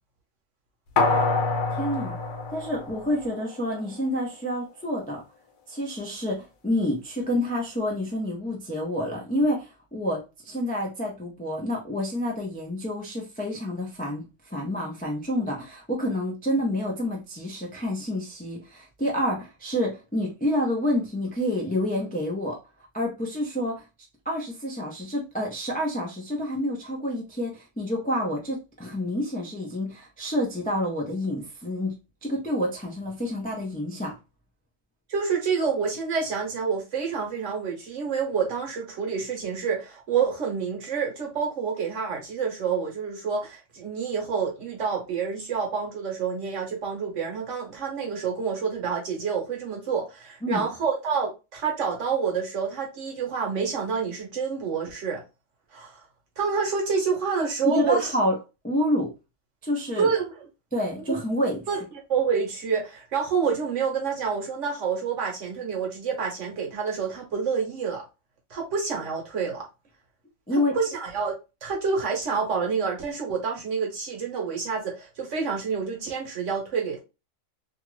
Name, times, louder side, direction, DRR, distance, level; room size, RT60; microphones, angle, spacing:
sound 1, 1.0-3.5 3.9-4.0, left 3 dB, 65° left, 1.0 m, -26 dB
voice 1, 1.8-2.2 2.5-5.2 5.7-22.6 22.9-23.8 24.3-32.0 32.2-34.1 50.4-50.6 57.6-58.4 58.6-59.1 59.6-60.1 60.7-61.6 70.5-70.7, left 1 dB, 10° left, 0.4 m, -28 dB
voice 2, 35.1-55.2 55.7-56.0 56.4-58.1 60.0-60.5 61.7-61.8 62.1-68.0 68.5-69.7 70.5-71.3 71.6-77.0, right 6 dB, 60° right, 1.3 m, -28 dB
2.9 x 2.4 x 3.1 m
omnidirectional pair, 1.5 m